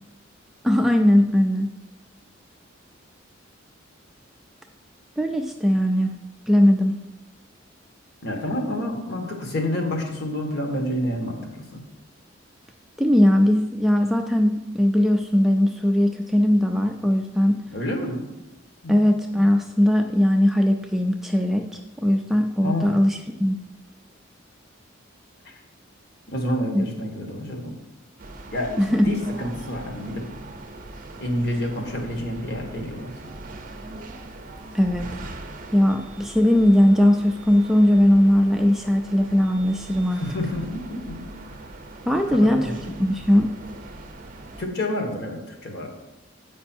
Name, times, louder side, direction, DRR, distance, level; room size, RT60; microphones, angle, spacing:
voice 1, 0.6-1.7 5.2-6.1 6.5-6.9 13.0-17.5 18.9-23.6 26.7-26.9 28.8-29.1 34.7-35.1 35.7-40.2 42.1-42.7 43.0-43.5, left 1 dB, ahead, 3 dB, 0.3 m, -19 dB
voice 2, 8.2-11.8 17.7-18.2 18.8-19.1 22.6-23.0 25.4-25.5 26.3-27.7 28.5-30.3 31.2-33.1 40.1-41.4 42.3-42.8 44.6-45.9, left 1 dB, 55° left, 2 dB, 1.4 m, -29 dB
sound 1, 28.2-44.6, right 2 dB, 40° right, 0.6 m, -41 dB
8.0 x 5.3 x 4.3 m, 1.0 s
head